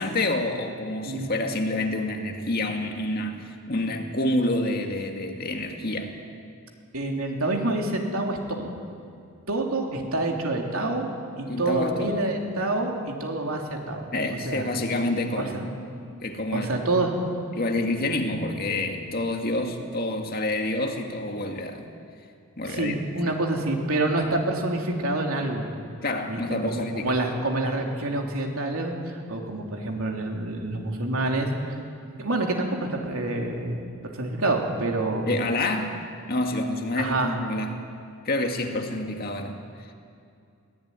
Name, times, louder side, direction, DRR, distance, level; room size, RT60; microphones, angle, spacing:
voice 1, 0.0-6.1 11.5-12.1 14.1-15.7 16.2-16.8 17.5-21.8 22.6-23.0 26.0-27.1 35.3-36.0 36.3-37.8 38.2-39.9, left 1 dB, 45° left, 3 dB, 2.1 m, -28 dB
voice 2, 6.9-8.7 9.5-11.1 11.4-14.1 14.5-14.7 15.4-15.5 16.5-17.2 22.6-25.6 26.3-26.4 26.6-28.9 29.3-31.5 32.2-33.8 34.1-35.3 37.0-37.3, right 2 dB, 75° right, 1 dB, 3.3 m, -27 dB
22.5 x 17.0 x 9.8 m, 2.4 s
head